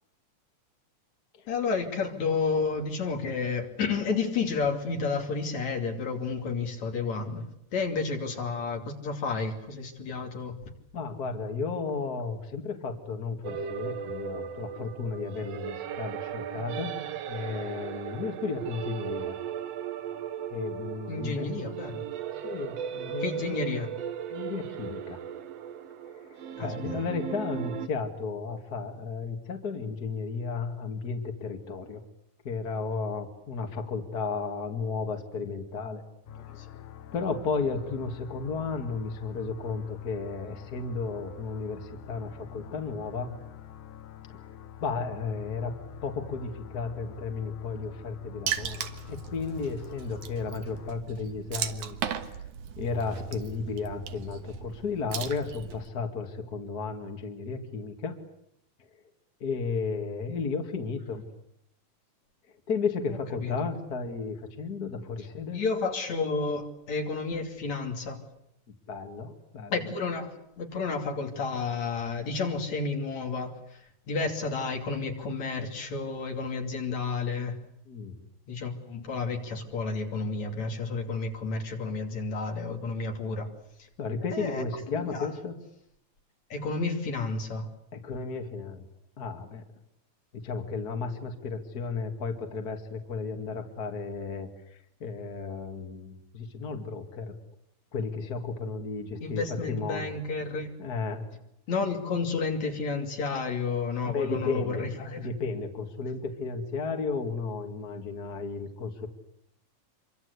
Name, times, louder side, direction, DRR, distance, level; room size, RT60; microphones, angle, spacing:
voice 1, 1.5-10.6 21.1-22.1 23.2-23.9 26.6-27.0 36.6-36.7 63.4-63.7 65.5-68.2 69.7-73.8 74.1-77.6 78.5-83.5 84.3-85.3 86.5-87.7 99.2-100.7 101.7-105.3, left 4 dB, 65° left, 3 dB, 4.1 m, -31 dB
voice 2, 10.9-16.9 17.3-19.4 20.5-21.5 22.4-23.6 24.3-25.2 26.1-32.0 32.4-36.0 36.5-36.8 37.1-43.4 44.5-45.7 46.0-52.3 52.8-58.2 59.4-61.2 62.7-65.6 68.9-69.9 77.9-78.2 84.0-85.6 87.9-88.8 89.2-89.6 90.3-97.3 97.9-100.1 100.8-101.3 104.0-109.1, left 4 dB, 35° left, 4 dB, 2.5 m, -34 dB
sound 1, 13.4-27.9, right 8 dB, 65° right, 2.2 m, -37 dB
sound 2, 36.3-51.0, left 10 dB, 90° left, 2.8 m, -46 dB
Water / Splash splatter, 48.5-55.9, right 9 dB, 80° right, 2.9 m, -37 dB
26.5 x 24.0 x 8.3 m, 0.76 s
omnidirectional pair, 3.4 m